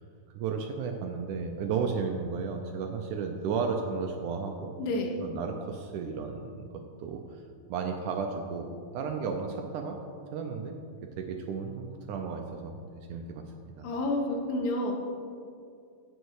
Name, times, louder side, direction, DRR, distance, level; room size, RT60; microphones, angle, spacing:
voice 1, 0.3-4.7 5.2-6.7 7.0-7.4 7.7-10.0 10.3-10.8 11.2-13.9, right 5 dB, 75° right, 4 dB, 1.9 m, -34 dB
voice 2, 4.8-5.1 13.8-15.0, left 2 dB, 70° left, 1 dB, 2.7 m, -29 dB
16.0 x 6.4 x 4.8 m, 2.3 s
omnidirectional pair, 4.1 m